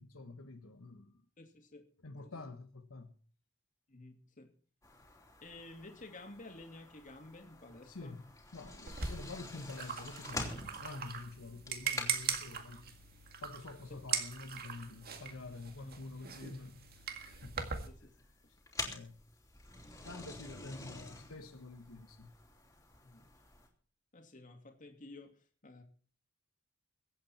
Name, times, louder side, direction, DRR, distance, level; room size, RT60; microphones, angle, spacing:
voice 1, 0.0-1.2 2.0-3.2 7.8-8.3 8.5-13.0 13.4-17.9 18.8-19.2 20.0-22.3, left 3 dB, 75° left, 1.4 m, -48 dB
voice 2, 1.4-1.9 2.2-2.3 3.9-4.5 5.4-8.1 15.8-16.0 17.9-18.1 23.0-23.3 24.1-25.8, left 2 dB, 40° left, 2.7 m, -52 dB
sound 1, 4.8-23.7, left 2 dB, 15° left, 3.1 m, -49 dB
sound 2, 8.9-17.9, right 6 dB, 45° right, 1.9 m, -41 dB
23.0 x 8.6 x 4.4 m
head